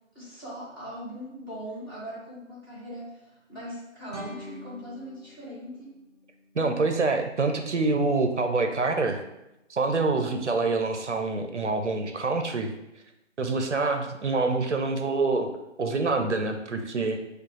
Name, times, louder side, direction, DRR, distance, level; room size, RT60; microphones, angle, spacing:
voice 1, 0.1-6.0, equal, 15° left, -10 dB, 1.0 m, -40 dB
sound 1, 4.1-7.1, equal, 35° left, 0.6 m, -45 dB
voice 2, 6.6-9.2 9.7-12.7 13.4-15.5 15.8-17.2, right 3 dB, 65° right, 5 dB, 0.6 m, -26 dB
4.4 x 2.3 x 3.1 m, 0.90 s
figure-of-eight pair, 160°, 38 cm